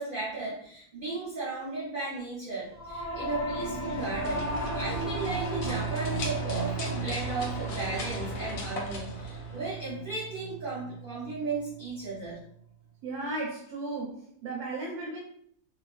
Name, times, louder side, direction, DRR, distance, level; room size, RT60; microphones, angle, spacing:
voice 1, 0.0-4.5 4.7-12.4, right 3 dB, 55° right, -7 dB, 0.6 m, -35 dB
Singing / Musical instrument, 2.7-12.3, right 3 dB, 20° left, 0.6 m, -35 dB
sound 1, 3.8-10.0, left 2 dB, 70° left, 1.0 m, -38 dB
voice 2, 13.0-15.2, right 2 dB, 85° right, -3 dB, 1.2 m, -35 dB
2.6 x 2.4 x 2.3 m, 0.65 s
omnidirectional pair, 1.6 m